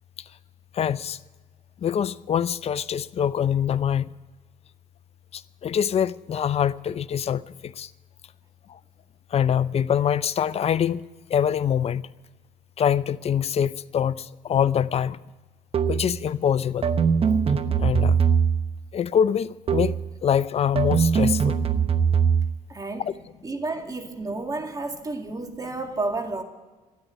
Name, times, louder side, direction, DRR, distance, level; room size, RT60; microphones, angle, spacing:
voice 1, 0.7-1.2 1.8-4.1 5.3-7.9 8.7-8.8 9.3-11.0 11.3-12.1 12.8-15.2 15.8-16.9 17.8-18.2 18.9-21.5 23.0-23.1, left 8 dB, 45° left, 0.5 m, -24 dB
sound 1, 15.7-16.2 16.8-18.8 19.7-20.1 20.8-22.5, right 6 dB, 45° right, 0.9 m, -21 dB
voice 2, 22.7-23.1 23.4-26.4, right 3 dB, 25° right, 2.2 m, -31 dB
13.0 x 9.4 x 9.9 m
cardioid pair, 85°, 14 cm